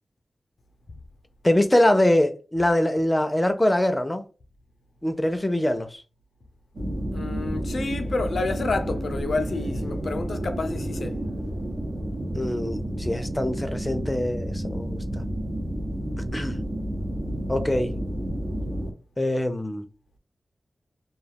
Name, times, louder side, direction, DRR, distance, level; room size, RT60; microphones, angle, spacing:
voice 1, 1.4-4.2 5.0-6.0 12.4-15.2 16.2-16.6 17.5-17.9 19.2-19.9, left 1 dB, 20° left, 0.5 m, -23 dB
sound 1, 6.7-18.9, right 1 dB, 75° right, 0.8 m, -30 dB
voice 2, 7.1-11.1, left 3 dB, 75° left, 0.4 m, -29 dB
2.3 x 2.2 x 3.4 m
wide cardioid pair, 70°, 0 cm